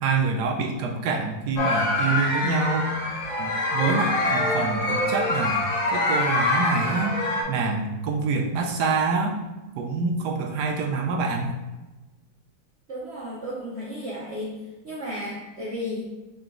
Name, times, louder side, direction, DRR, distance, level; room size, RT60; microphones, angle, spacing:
voice 1, 0.0-2.9 3.4-7.2 7.5-9.4 9.8-11.5, right 4 dB, 75° right, 2 dB, 1.1 m, -26 dB
sound 1, 1.6-7.4, left 2 dB, 50° left, 1.3 m, -25 dB
voice 2, 12.9-14.6 14.8-16.1, left 1 dB, 55° right, -6 dB, 0.7 m, -33 dB
4.0 x 3.4 x 3.7 m, 1.1 s
omnidirectional pair, 1.9 m